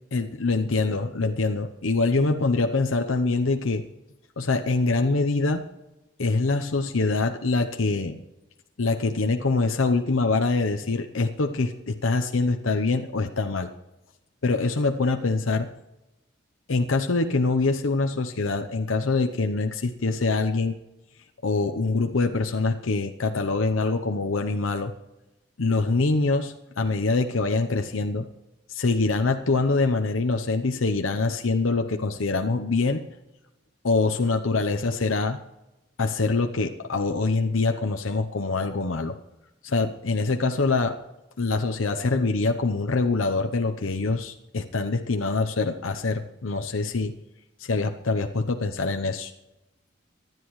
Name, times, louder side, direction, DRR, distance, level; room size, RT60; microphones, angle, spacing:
voice 1, 0.1-3.8 4.4-5.6 6.2-8.2 8.8-13.7 14.4-15.7 16.7-20.8 21.4-24.9 25.6-28.3 28.7-33.0 33.8-35.4 36.0-39.2 39.6-41.0 41.4-47.1 47.6-49.3, left 3 dB, 90° left, 5 dB, 0.8 m, -24 dB
25.0 x 11.0 x 3.2 m, 0.99 s
head